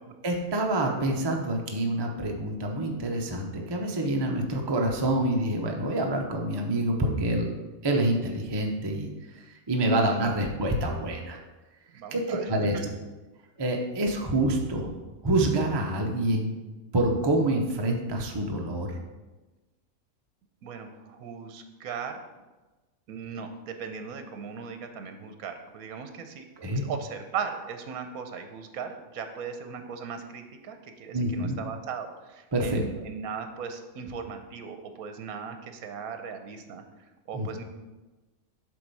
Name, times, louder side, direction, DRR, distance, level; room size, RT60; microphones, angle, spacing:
voice 1, 0.2-7.5 7.8-9.1 9.7-11.4 12.1-12.8 13.6-14.9 15.2-16.5 16.9-18.9 26.6-26.8 31.1-31.6 32.5-32.8 37.3-37.5, right 1 dB, 30° right, 1 dB, 0.5 m, -27 dB
voice 2, 11.9-12.8 20.6-22.2 23.1-26.4 26.7-36.8 37.3-37.6, right 6 dB, 80° right, 7 dB, 1.2 m, -38 dB
7.7 x 3.7 x 5.3 m, 1.2 s
omnidirectional pair, 1.5 m